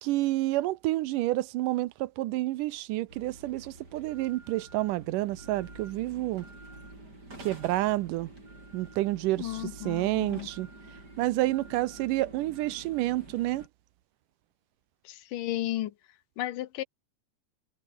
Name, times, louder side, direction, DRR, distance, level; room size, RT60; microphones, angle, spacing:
voice 1, 0.0-6.5 7.4-8.3 8.7-10.7 11.2-13.7, right 17 dB, 80° right, 2.3 m, -29 dB
sound 1, 3.1-13.7, right 2 dB, 30° right, 8.0 m, -48 dB
voice 2, 9.4-10.5 15.3-15.9 16.4-16.8, left 14 dB, 85° left, 2.6 m, -33 dB
omnidirectional pair, 3.8 m